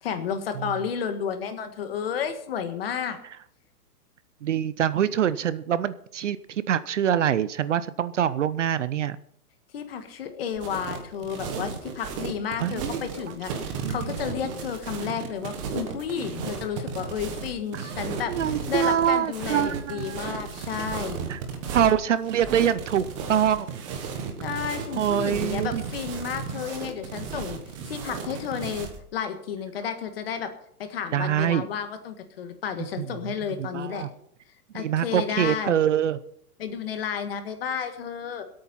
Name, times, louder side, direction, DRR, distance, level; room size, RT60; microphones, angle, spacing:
voice 1, 0.0-3.2 9.7-13.5 13.9-18.3 18.7-21.2 24.4-27.6 27.8-30.5 30.8-34.1 34.7-35.8 36.6-38.4, left 7 dB, 40° left, 8 dB, 1.6 m, -32 dB
voice 2, 4.4-9.2 12.6-13.3 13.8-14.2 17.7-20.4 21.3-21.4 21.7-23.8 24.9-25.8 31.1-31.7 33.0-33.1 33.5-34.1 34.7-36.2, right 9 dB, 55° right, 16 dB, 0.6 m, -25 dB
sound 1, 10.5-29.0, right 5 dB, 20° right, 1.3 m, -34 dB
22.5 x 8.7 x 4.3 m, 0.70 s
hypercardioid pair, 175°, 45 cm